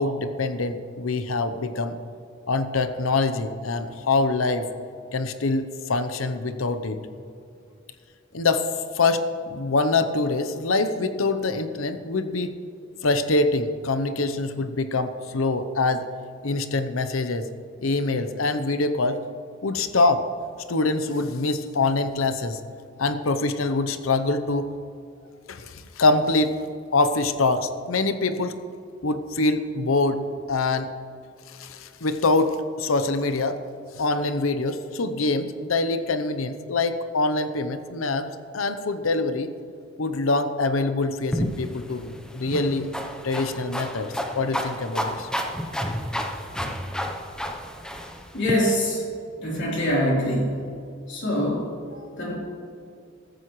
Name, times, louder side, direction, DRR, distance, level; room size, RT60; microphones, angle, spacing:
voice 1, 0.0-2.0 2.5-4.7 5.1-7.0 8.3-8.6 8.9-12.5 13.0-16.1 16.4-17.5 17.8-19.2 19.6-20.2 20.7-22.6 23.0-24.7 25.5-26.5 26.9-28.6 29.0-30.2 30.5-30.9 31.5-33.6 34.0-38.3 38.5-39.5 40.0-42.9 43.2-45.3, left 3 dB, 85° left, 10 dB, 0.8 m, -24 dB
sound 1, 41.3-48.5, equal, 5° left, 0.8 m, -31 dB
voice 2, 48.3-49.1 49.4-50.6 51.1-52.3, equal, 60° left, -5 dB, 3.6 m, -24 dB
15.0 x 14.5 x 3.2 m, 2.4 s
head